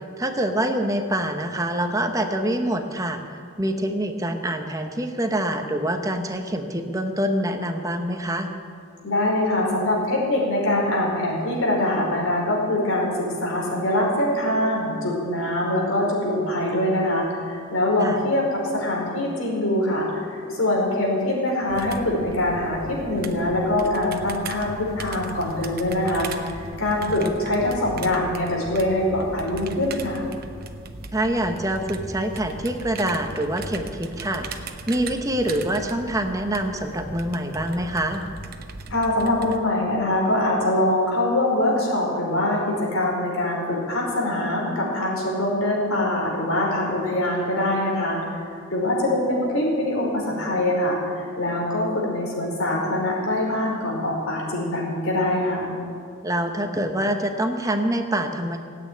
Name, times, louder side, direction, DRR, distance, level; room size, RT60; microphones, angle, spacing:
voice 1, 0.2-3.2 3.6-8.5 18.0-18.2 27.1-27.4 31.1-38.2 56.2-58.6, right 1 dB, 15° right, 5 dB, 0.9 m, -25 dB
voice 2, 9.0-30.2 38.9-48.4 48.7-55.7, left 1 dB, 85° left, -3 dB, 5.0 m, -23 dB
sound 1, 21.7-39.6, right 3 dB, 45° right, 0.9 m, -38 dB
17.5 x 8.8 x 9.5 m, 2.3 s
head